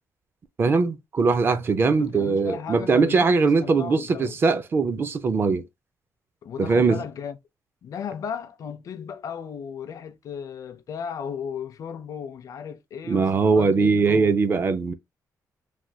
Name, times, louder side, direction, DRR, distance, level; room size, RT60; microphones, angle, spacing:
voice 1, 0.6-5.6 6.6-7.0 13.1-14.9, right 4 dB, 35° right, 0.4 m, -21 dB
voice 2, 2.0-4.4 6.4-7.4 7.8-14.3, left 7 dB, 55° left, 0.5 m, -35 dB
3.2 x 2.2 x 2.7 m
cardioid pair, 145°, 7 cm